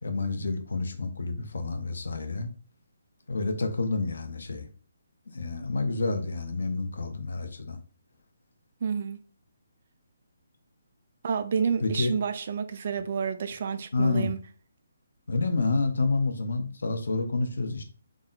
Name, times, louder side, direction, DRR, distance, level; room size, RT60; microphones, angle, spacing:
voice 1, 0.0-2.5 3.3-4.7 5.3-7.8 11.8-12.1 13.9-14.3 15.3-17.8, left 3 dB, 75° left, 0.8 m, -29 dB
voice 2, 8.8-9.2 11.2-14.4, right 6 dB, 45° right, 0.4 m, -29 dB
3.6 x 2.1 x 3.9 m
hypercardioid pair, 160°, 0 cm